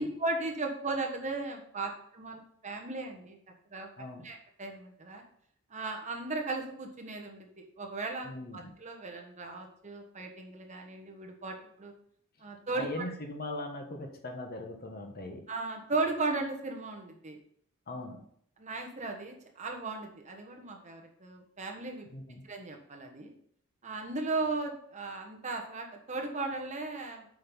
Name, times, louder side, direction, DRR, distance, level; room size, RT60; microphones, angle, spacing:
voice 1, 0.0-3.4 3.7-3.9 4.2-5.2 5.7-11.9 12.4-13.0 15.5-17.4 18.6-22.1 22.4-23.3 23.8-27.3, right 3 dB, 35° right, 2 dB, 1.4 m, -36 dB
voice 2, 4.0-4.3 8.2-8.7 12.7-15.4 17.9-18.2 22.1-22.4, left 1 dB, 45° left, 3 dB, 1.3 m, -40 dB
7.8 x 5.3 x 5.5 m, 0.66 s
head